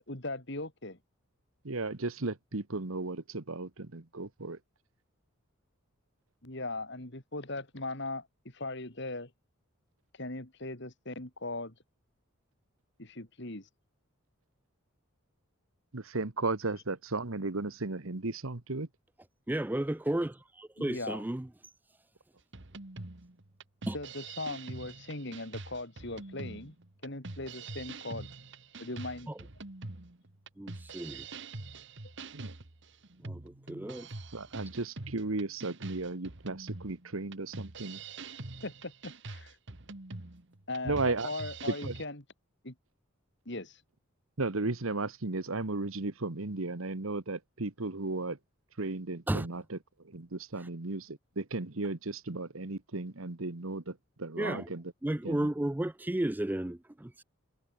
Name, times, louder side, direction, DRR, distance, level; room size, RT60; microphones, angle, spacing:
voice 1, 0.1-1.0 6.4-8.3 8.5-9.3 10.2-11.7 13.0-13.7 20.8-21.2 23.8-26.8 27.0-28.3 28.8-29.3 38.6-39.5 40.7-42.2 42.6-42.7 43.5-43.8, left 2 dB, 55° left, 3.6 m, -39 dB
voice 2, 1.6-4.6 15.9-18.9 32.3-32.5 34.3-38.0 40.8-41.3 41.7-41.9 44.4-48.4 48.8-54.9 55.2-55.5, right 3 dB, 75° right, 1.4 m, -35 dB
voice 3, 19.5-21.5 23.9-24.0 29.3-29.4 30.6-31.3 33.2-34.1 49.3-49.5 54.4-54.7 55.0-57.2, right 1 dB, 10° right, 0.3 m, -33 dB
sound 1, 22.5-42.0, right 3 dB, 55° right, 1.7 m, -44 dB
head